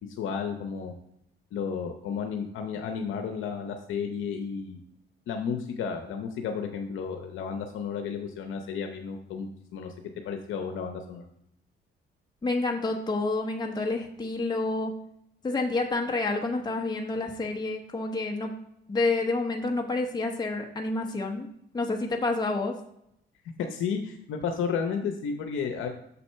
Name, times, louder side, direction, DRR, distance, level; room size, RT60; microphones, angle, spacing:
voice 1, 0.2-0.9 1.5-4.8 5.3-9.9 10.2-11.2 23.6-25.9, left 6 dB, 80° left, 5 dB, 0.7 m, -32 dB
voice 2, 12.4-14.9 15.4-18.5 18.9-21.5 21.7-22.8, left 3 dB, 20° left, 2 dB, 0.9 m, -28 dB
7.0 x 4.1 x 5.5 m, 0.76 s
cardioid pair, 90°, 20 cm